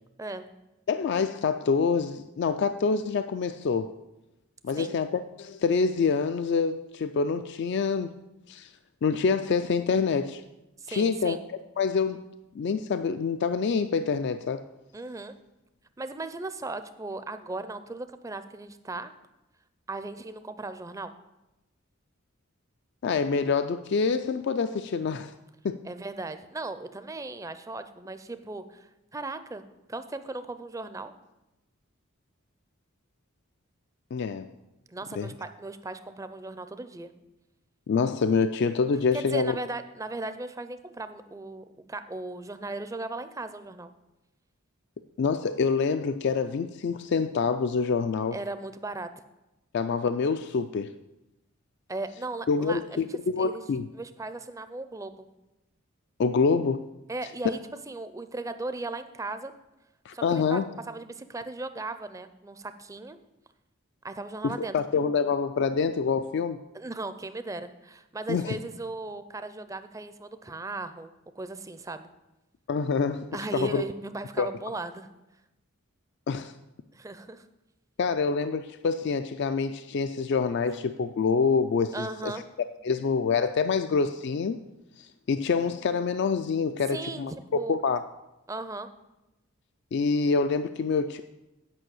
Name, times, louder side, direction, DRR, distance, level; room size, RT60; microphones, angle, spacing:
voice 1, 0.9-4.0 4.6-8.2 8.5-8.7 9.0-10.4 10.9-11.4 11.8-12.2 12.5-14.7 23.0-25.3 25.6-25.9 34.1-34.5 35.1-35.3 37.9-39.5 45.2-48.4 49.7-50.9 52.5-53.9 56.2-56.9 60.1-60.6 64.4-66.6 68.3-68.6 72.7-73.8 74.4-74.5 76.3-76.5 78.0-82.3 82.8-84.6 85.0-87.3 87.7-88.0 89.9-91.2, left 5 dB, 50° left, 10 dB, 0.3 m, -26 dB
voice 2, 10.8-11.4 14.9-15.4 16.0-19.1 19.9-21.1 25.8-29.6 29.9-31.1 34.9-37.1 39.1-43.9 48.3-49.1 51.9-53.1 53.4-53.6 53.9-55.3 57.1-57.6 57.9-59.5 60.1-60.6 60.9-63.2 64.0-64.8 66.7-72.1 73.3-75.1 76.9-77.5 81.9-82.4 86.9-87.8 88.5-88.9, right 2 dB, 15° right, 11 dB, 0.4 m, -37 dB
9.0 x 5.4 x 7.7 m, 0.98 s
head